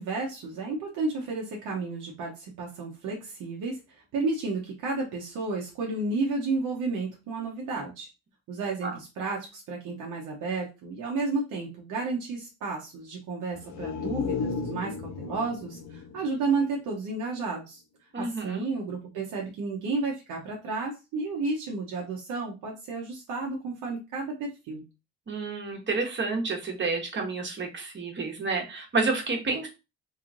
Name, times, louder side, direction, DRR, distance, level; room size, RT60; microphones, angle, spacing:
voice 1, 0.0-8.1 8.5-17.8 18.2-24.8, right 3 dB, 85° right, -1 dB, 0.8 m, -32 dB
sound 1, 13.5-17.3 17.6-17.7, left 6 dB, 65° left, 0.6 m, -35 dB
voice 2, 18.1-18.6 25.3-29.7, right 3 dB, 40° right, 2 dB, 1.2 m, -29 dB
3.1 x 3.0 x 2.5 m, 0.28 s
cardioid pair, 90°, 30 cm